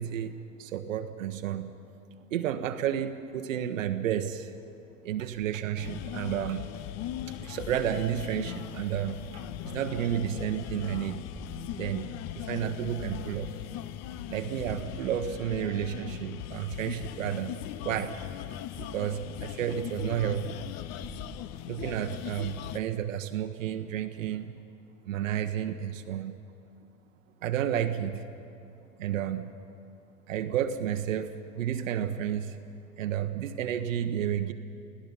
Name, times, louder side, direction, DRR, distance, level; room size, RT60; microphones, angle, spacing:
voice 1, 0.0-1.7 2.3-4.5 5.0-6.7 7.4-11.2 11.7-13.5 14.3-17.5 17.8-18.2 18.8-20.6 21.7-24.5 25.1-26.4 27.4-28.3 29.0-29.5 30.3-32.6 33.0-34.5, right 10 dB, 70° right, 7 dB, 1.0 m, -31 dB
sound 1, 5.8-22.8, left 12 dB, 40° left, 0.8 m, -39 dB
sound 2, 7.1-10.0 10.6-12.2 13.1-16.4 17.4-23.3 23.7-23.8 24.1-24.3, right 1 dB, 10° left, 6.2 m, -51 dB
29.5 x 17.5 x 5.7 m, 2.7 s
figure-of-eight pair, 80°, 40 cm